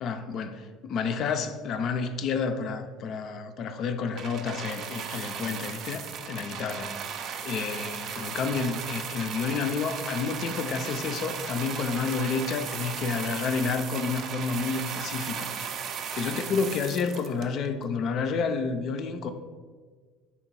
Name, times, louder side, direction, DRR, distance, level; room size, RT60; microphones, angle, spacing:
voice 1, 0.0-6.9 7.4-15.8 16.1-19.3, left 5 dB, 55° left, 0.3 m, -30 dB
sound 1, 4.2-17.8 18.6-18.7, right 7 dB, 55° right, 0.3 m, -36 dB
3.4 x 2.9 x 4.4 m
hypercardioid pair, 70°, 0 cm